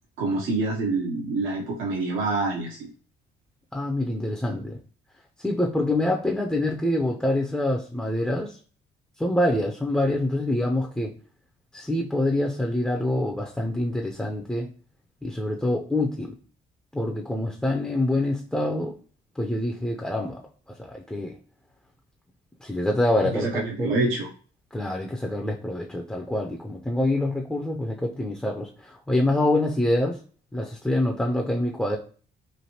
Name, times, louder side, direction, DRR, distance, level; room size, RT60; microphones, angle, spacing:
voice 1, 0.2-2.9 23.3-24.3, right 3 dB, 85° right, -2 dB, 0.7 m, -26 dB
voice 2, 3.7-4.8 5.4-8.6 9.2-11.1 11.7-14.7 15.2-16.3 16.9-19.0 19.4-20.4 20.8-21.3 22.6-23.9 24.7-30.2 30.5-32.0, left 1 dB, 5° left, 1 dB, 0.4 m, -26 dB
3.2 x 2.5 x 2.8 m, 0.42 s
cardioid pair, 90°, 20 cm